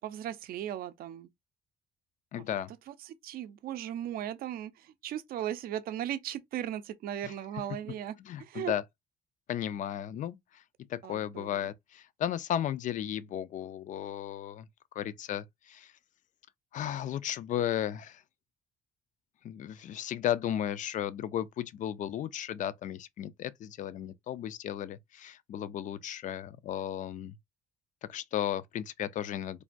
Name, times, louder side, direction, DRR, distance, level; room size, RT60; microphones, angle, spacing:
voice 1, 0.0-1.3 2.4-2.5 2.9-8.7 11.0-11.7, right 11 dB, 60° right, 0.5 m, -37 dB
voice 2, 2.3-2.7 7.2-7.3 8.3-8.8 9.5-10.6 10.9-14.7 14.9-15.9 16.7-18.2 19.4-27.4 28.0-29.6, left 10 dB, 50° left, 0.4 m, -34 dB
3.3 x 2.2 x 2.5 m
cardioid pair, 110°, 17 cm